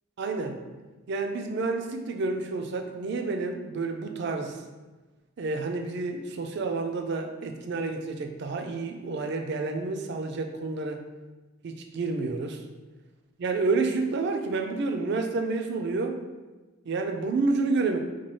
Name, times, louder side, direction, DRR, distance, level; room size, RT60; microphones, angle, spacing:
voice 1, 0.2-0.6 1.1-4.6 5.4-11.0 11.6-12.6 13.4-16.2 16.9-18.0, right 3 dB, 55° right, 5 dB, 0.4 m, -29 dB
4.3 x 2.3 x 3.0 m, 1.2 s
head